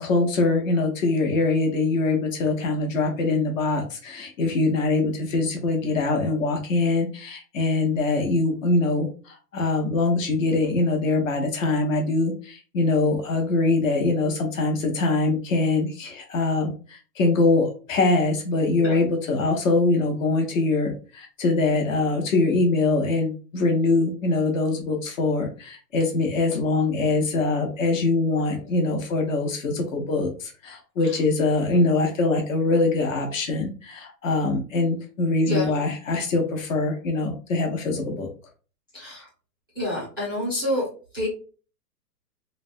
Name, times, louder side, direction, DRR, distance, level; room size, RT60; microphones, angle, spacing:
voice 1, 0.0-38.3, left 3 dB, 50° left, 3 dB, 0.9 m, -23 dB
voice 2, 38.9-39.3 39.8-40.9 41.1-41.3, left 1 dB, 15° right, -7 dB, 0.4 m, -27 dB
3.2 x 2.1 x 2.6 m, 0.37 s
hypercardioid pair, 160°, 49 cm